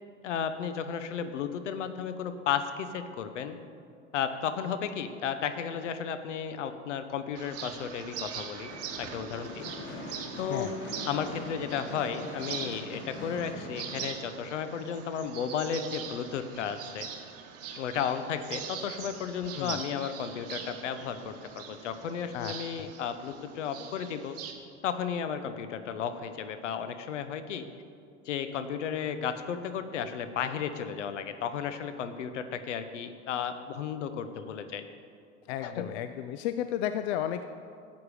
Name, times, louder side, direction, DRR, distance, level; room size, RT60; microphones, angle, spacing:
voice 1, 0.2-3.6 4.1-8.7 9.0-9.7 10.4-10.7 11.1-17.1 17.8-24.4 24.8-27.7 28.3-34.8 35.6-35.9, left 7 dB, 75° left, 10 dB, 1.0 m, -34 dB
sound 1, 7.3-24.5, right 8 dB, 40° right, 1.5 m, -42 dB
Gunshot gunfire / Fireworks, 8.7-15.0, left 2 dB, 35° left, 1.9 m, -42 dB
voice 2, 22.3-22.9 35.5-37.5, left 11 dB, 60° left, 9 dB, 0.6 m, -33 dB
14.0 x 8.3 x 4.9 m, 2.3 s
hypercardioid pair, 90°, 36 cm